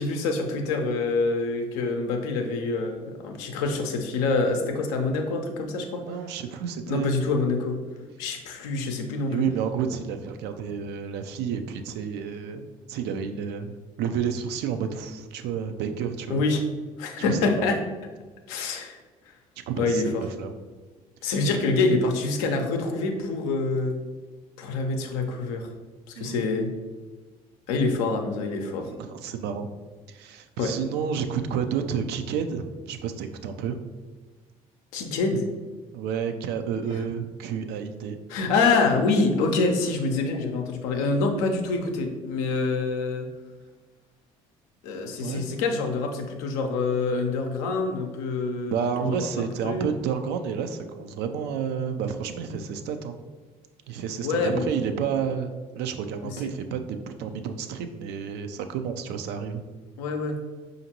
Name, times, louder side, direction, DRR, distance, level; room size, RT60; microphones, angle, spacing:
voice 1, 0.0-6.0 6.9-7.8 8.2-9.5 16.3-16.6 17.0-17.8 18.5-19.0 19.8-20.2 21.2-24.0 24.6-25.7 26.1-26.7 27.7-28.9 30.6-30.7 34.9-35.5 38.3-43.3 44.8-49.3 49.6-49.9 54.2-54.7 56.2-56.4 60.0-60.4, left 3 dB, 80° left, 4 dB, 0.5 m, -26 dB
voice 2, 6.0-7.1 9.3-16.4 17.3-17.8 19.7-20.5 26.2-26.4 29.0-29.7 30.1-33.8 35.9-38.2 45.2-45.4 48.7-53.2 53.9-56.8 57.2-59.6, right 7 dB, 70° right, 8 dB, 0.4 m, -30 dB
5.0 x 2.6 x 2.8 m, 1.3 s
hypercardioid pair, 55°, 18 cm